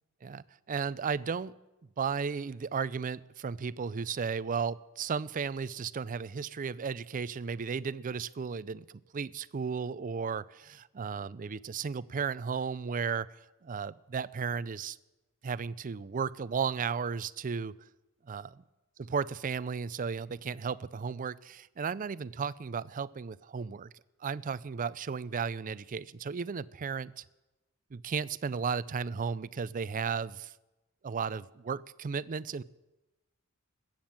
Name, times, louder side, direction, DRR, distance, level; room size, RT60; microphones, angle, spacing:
voice 1, 0.2-1.5 2.0-8.8 9.1-13.3 13.6-15.0 15.4-17.7 18.3-18.6 19.0-23.9 24.2-27.1 27.9-30.5 31.0-32.6, right 6 dB, 40° right, 18 dB, 0.4 m, -34 dB
20.5 x 8.9 x 7.5 m, 1.0 s
head